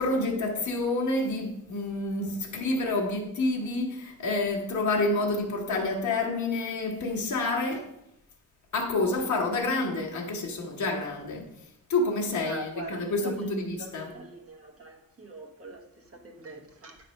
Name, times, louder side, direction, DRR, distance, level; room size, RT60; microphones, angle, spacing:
voice 1, 0.0-7.9 8.7-11.5 11.9-14.1, left 2 dB, 60° left, 1.2 m, -28 dB
voice 2, 12.4-17.0, right 2 dB, 40° right, 1.3 m, -42 dB
9.0 x 3.3 x 5.3 m
wide cardioid pair, 175°, 34 cm